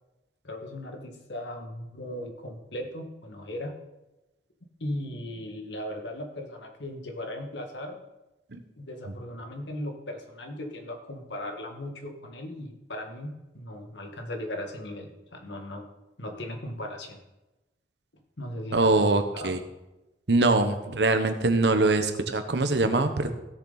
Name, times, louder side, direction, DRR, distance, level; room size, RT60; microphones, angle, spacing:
voice 1, 0.4-3.8 4.8-8.0 8.8-15.9 16.2-17.2 18.4-19.0 19.3-19.5, left 1 dB, 90° left, 3 dB, 1.8 m, -37 dB
voice 2, 18.7-19.6 20.3-23.3, right 2 dB, 75° right, 8 dB, 1.1 m, -23 dB
16.0 x 6.9 x 4.0 m, 1.0 s
head